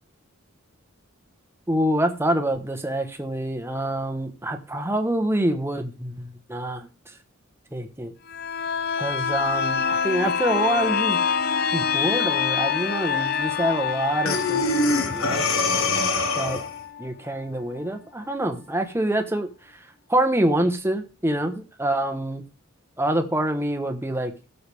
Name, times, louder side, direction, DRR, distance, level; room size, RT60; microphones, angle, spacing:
voice 1, 1.7-7.2 7.7-8.1 9.0-11.2 11.7-15.5 16.4-16.6 17.0-22.4 23.0-24.3, right 1 dB, 10° right, 7 dB, 1.2 m, -26 dB
sound 1, 8.3-17.9 18.2-18.3, left 7 dB, 45° left, 0.7 m, -26 dB
Breathing, 14.3-16.8, left 3 dB, 80° left, 1.5 m, -23 dB
16.5 x 6.8 x 3.5 m, 0.34 s
head